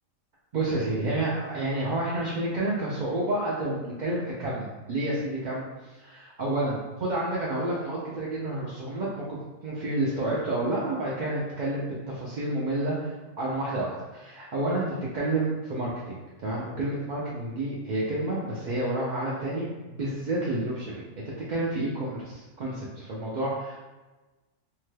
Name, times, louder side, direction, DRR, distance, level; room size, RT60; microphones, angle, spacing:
voice 1, 0.5-5.6 6.0-21.0 21.5-23.8, right 2 dB, 75° right, -6 dB, 0.4 m, -30 dB
2.8 x 2.2 x 3.2 m, 1.2 s
omnidirectional pair, 1.3 m